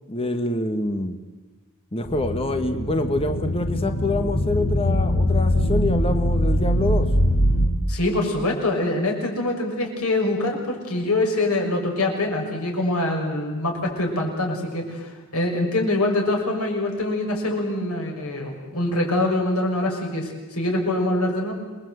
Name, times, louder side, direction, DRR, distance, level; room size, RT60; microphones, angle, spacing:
voice 1, 0.1-1.2 1.9-7.1, left 2 dB, 25° left, 7 dB, 1.4 m, -26 dB
sound 1, 2.1-7.7, equal, 70° left, 4.7 m, -22 dB
voice 2, 7.9-21.5, left 2 dB, 90° left, 1 dB, 6.4 m, -24 dB
28.0 x 21.5 x 8.1 m, 1.3 s
head